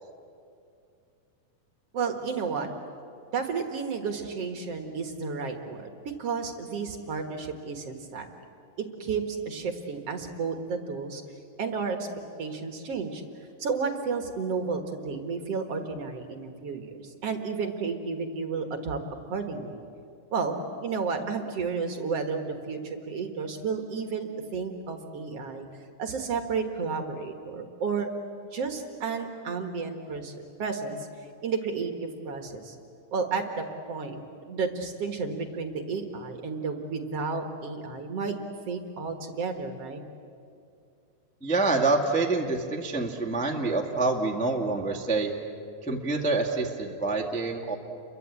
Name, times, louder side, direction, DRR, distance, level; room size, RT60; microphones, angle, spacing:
voice 1, 1.9-2.7 3.3-5.9 6.2-8.3 8.8-11.2 11.6-12.1 12.4-13.2 13.6-19.0 19.3-19.8 20.3-25.7 26.0-28.1 28.5-31.1 31.4-32.8 33.1-38.3 38.7-40.0, right 5 dB, 50° right, 5 dB, 2.2 m, -32 dB
voice 2, 41.4-45.3 45.8-47.7, right 3 dB, 5° left, 0 dB, 1.0 m, -26 dB
30.0 x 23.0 x 8.4 m, 2.5 s
omnidirectional pair, 4.0 m